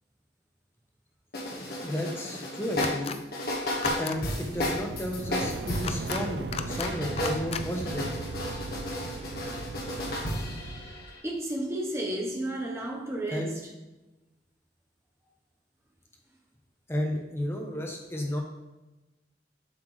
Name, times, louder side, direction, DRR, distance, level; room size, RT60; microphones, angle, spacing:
sound 1, 1.3-6.3 6.6-11.2, left 1 dB, 60° left, 1.5 m, -33 dB
voice 1, 1.8-3.2 4.0-8.1 13.3-13.5 16.9-18.4, left 1 dB, 15° left, 0.9 m, -33 dB
sound 2, 2.8-3.2 3.7-4.2 5.7-6.2 6.5-6.9 7.2-7.6, left 6 dB, 35° left, 0.3 m, -35 dB
sound 3, 4.1-11.1, right 3 dB, 65° right, 0.4 m, -38 dB
voice 2, 11.2-13.7, right 1 dB, 15° right, 1.0 m, -32 dB
7.5 x 5.8 x 3.2 m
head